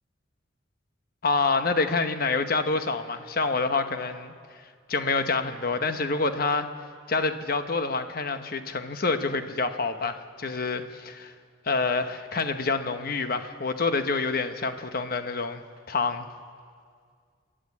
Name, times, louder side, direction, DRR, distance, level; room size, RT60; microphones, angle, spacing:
voice 1, 1.2-4.3 4.9-6.7 7.1-11.3 11.6-15.6 15.9-16.3, left 3 dB, 55° left, 8 dB, 1.1 m, -27 dB
27.5 x 11.5 x 8.5 m, 2.1 s
head